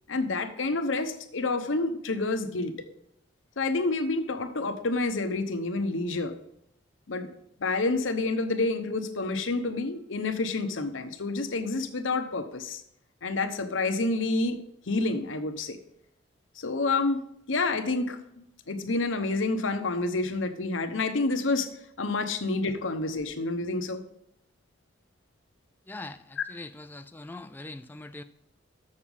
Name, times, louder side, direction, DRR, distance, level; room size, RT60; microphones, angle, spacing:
voice 1, 0.1-2.7 3.6-6.4 7.1-7.3 7.6-12.8 13.2-14.6 14.9-15.8 16.6-17.2 17.5-21.7 22.0-24.0 26.4-26.5, left 3 dB, 80° left, 8 dB, 0.9 m, -28 dB
voice 2, 25.9-28.2, left 2 dB, 10° left, 9 dB, 0.3 m, -42 dB
7.2 x 6.5 x 5.4 m, 0.77 s
head